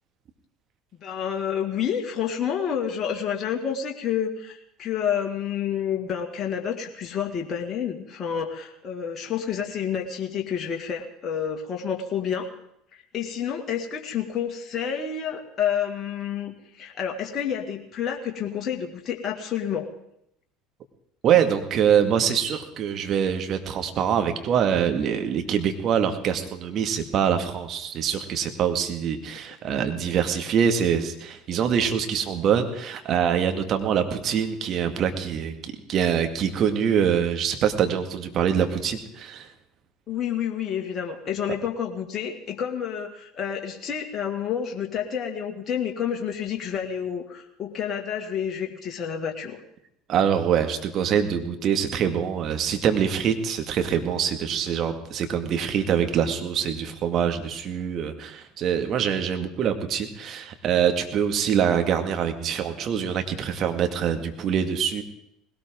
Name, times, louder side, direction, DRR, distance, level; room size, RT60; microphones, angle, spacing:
voice 1, 1.0-12.5 12.9-19.9 40.1-49.6, left 8 dB, 40° left, 2 dB, 2.0 m, -29 dB
voice 2, 21.2-39.5 50.1-65.0, right 8 dB, 50° right, 7 dB, 2.0 m, -24 dB
20.0 x 18.0 x 3.8 m, 0.75 s
hypercardioid pair, 70°, 0 cm